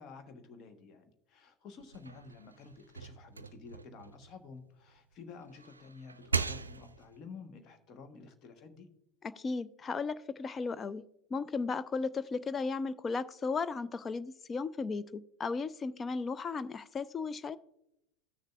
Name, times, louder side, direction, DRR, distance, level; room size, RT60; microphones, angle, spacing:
voice 1, 0.0-8.9, left 4 dB, 40° left, 7 dB, 1.1 m, -51 dB
sound 1, 1.8-5.0 5.4-7.2, right 4 dB, 80° right, 0.3 m, -39 dB
voice 2, 9.2-11.0 11.3-17.6, left 4 dB, 25° left, 15 dB, 0.4 m, -35 dB
16.0 x 6.5 x 2.3 m, 0.81 s
figure-of-eight pair, 80°, 0 cm